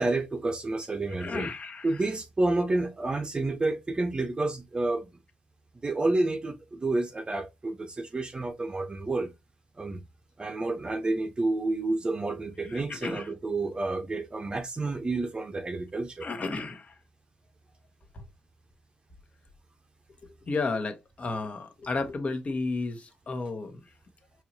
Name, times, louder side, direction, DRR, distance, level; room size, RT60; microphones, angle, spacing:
voice 1, 0.0-1.5 1.8-5.1 5.8-9.3 9.8-10.0 10.4-16.3, right 2 dB, 30° right, 0.7 m, -29 dB
voice 2, 1.2-2.0 12.6-13.3 16.2-16.9 18.1-18.2 20.5-23.8, left 3 dB, 45° left, 1.0 m, -33 dB
4.6 x 3.1 x 2.6 m
supercardioid pair, 60°, 3 cm